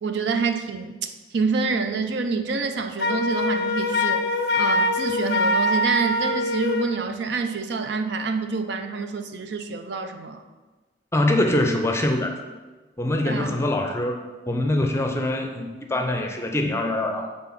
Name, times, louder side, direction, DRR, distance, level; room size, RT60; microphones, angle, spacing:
voice 1, 0.0-4.3 4.5-10.4 13.3-13.6, right 4 dB, 75° right, 7 dB, 0.5 m, -27 dB
Wind instrument woodwind instrument, 3.0-6.9, left 1 dB, 60° left, 0.4 m, -23 dB
voice 2, 11.1-12.4 13.0-14.2 14.5-17.3, left 1 dB, 15° left, 3 dB, 0.5 m, -23 dB
6.0 x 3.8 x 5.9 m, 1.2 s
head